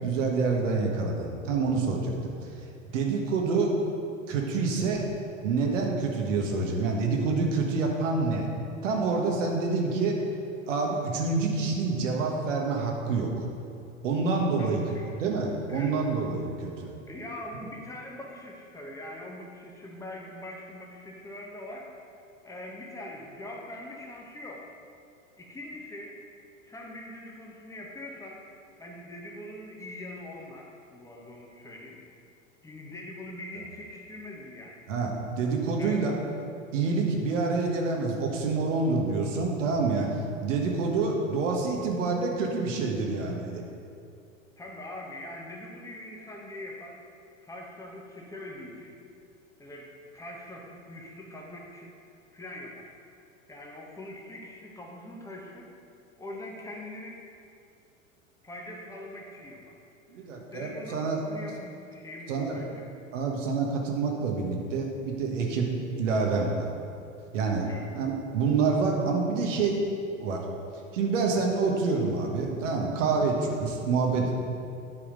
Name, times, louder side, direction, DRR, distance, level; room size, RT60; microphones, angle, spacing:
voice 1, 0.0-2.3 2.9-3.7 4.3-5.0 5.4-8.5 8.8-10.2 10.7-13.4 14.0-14.8 15.2-16.9 34.9-36.1 36.7-43.6 60.1-61.2 62.3-62.6 63.1-65.7 66.0-66.6 67.3-67.7 67.9-69.8 70.2-70.4 70.9-74.4, right 4 dB, 65° right, 1 dB, 1.5 m, -27 dB
voice 2, 14.6-15.2 15.7-16.0 17.1-21.9 22.4-24.6 25.4-26.2 26.6-28.4 28.8-32.0 32.6-34.8 35.8-36.2 44.6-47.0 47.4-49.0 49.6-51.9 52.3-52.9 53.5-55.7 56.2-57.2 58.4-59.8 60.1-60.2 60.5-62.9 67.6-67.9, left 1 dB, 10° left, -1 dB, 1.3 m, -42 dB
9.6 x 4.9 x 5.2 m, 2.5 s
hypercardioid pair, 90°, 39 cm